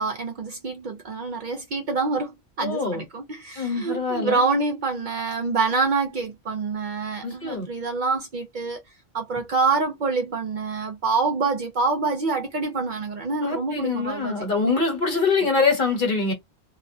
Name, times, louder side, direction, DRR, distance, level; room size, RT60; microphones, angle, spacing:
voice 1, 0.0-8.8 9.1-14.4, right 4 dB, 55° right, 0.6 m, -26 dB
voice 2, 2.6-3.0 3.6-4.4 7.2-7.7 13.4-16.3, left 4 dB, 50° left, 1.2 m, -24 dB
2.4 x 2.1 x 2.6 m
omnidirectional pair, 1.1 m